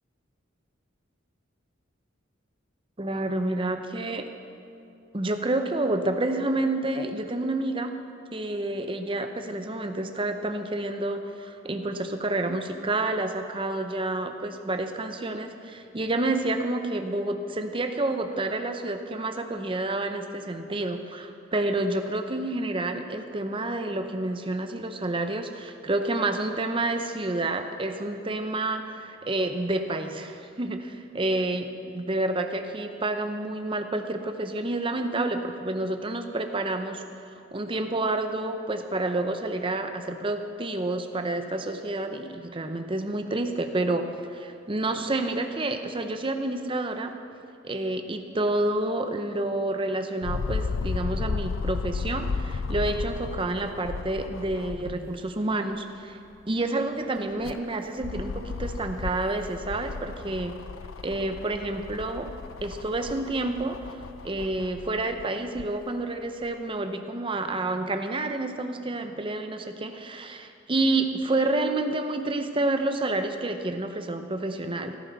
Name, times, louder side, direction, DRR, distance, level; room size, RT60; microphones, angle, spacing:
voice 1, 3.0-4.3 5.1-7.9 8.3-37.0 37.5-47.1 47.6-56.2 56.5-60.6 61.0-62.3 62.6-75.0, right 2 dB, 25° right, 7 dB, 0.7 m, -29 dB
sound 1, 50.2-55.3 55.7-55.8 57.2-65.7 66.5-66.6, left 4 dB, 85° left, 0.4 m, -34 dB
14.5 x 13.5 x 4.1 m, 2.6 s
head